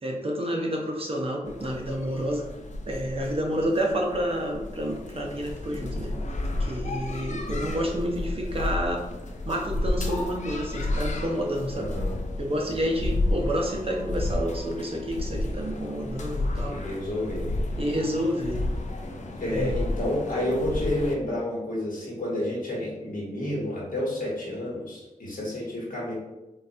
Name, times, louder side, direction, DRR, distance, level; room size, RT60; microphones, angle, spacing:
voice 1, 0.0-2.5 2.9-6.1 6.6-9.1 9.5-11.9 12.4-16.8 17.8-18.6 19.5-19.7, equal, 40° right, 0 dB, 0.8 m, -29 dB
sound 1, 1.5-21.2, left 1 dB, 55° left, 0.5 m, -32 dB
voice 2, 11.7-12.2 16.7-17.5 19.4-26.1, left 1 dB, 75° left, -5 dB, 1.3 m, -30 dB
3.9 x 2.4 x 2.7 m, 1.0 s
wide cardioid pair, 60°, 14 cm